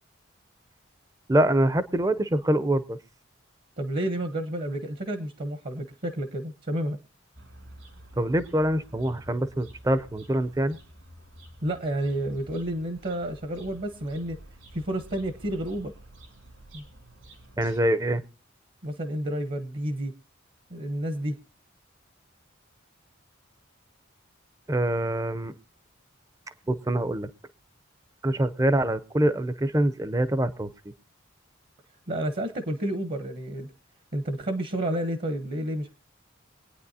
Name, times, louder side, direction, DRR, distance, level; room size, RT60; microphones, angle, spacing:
voice 1, 1.3-3.0 8.2-10.8 17.6-18.2 24.7-25.5 26.7-27.3 28.2-30.9, right 1 dB, 15° right, 13 dB, 0.5 m, -25 dB
voice 2, 3.8-7.0 11.6-14.4 14.7-15.9 16.7-16.8 18.8-20.1 20.7-21.4 32.1-33.7 34.1-35.9, right 1 dB, 45° right, 10 dB, 0.9 m, -30 dB
sound 1, 7.3-17.8, right 1 dB, 75° right, 2.8 m, -50 dB
23.5 x 9.3 x 2.7 m, 0.33 s
head